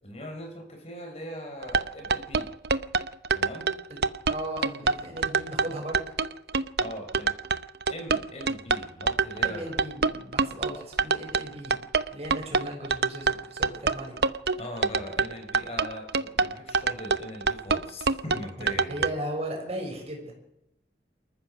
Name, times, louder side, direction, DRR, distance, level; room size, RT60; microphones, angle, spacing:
voice 1, 0.0-2.5 3.3-3.7 6.8-7.4 7.9-9.9 14.6-19.0, equal, 35° left, 4 dB, 4.5 m, -40 dB
sound 1, 1.6-19.1, right 4 dB, 65° right, 0.7 m, -25 dB
voice 2, 4.3-6.0 9.4-11.8 12.1-14.1 18.6-20.3, right 1 dB, 35° right, 2 dB, 6.3 m, -36 dB
28.5 x 14.5 x 6.4 m, 0.83 s
head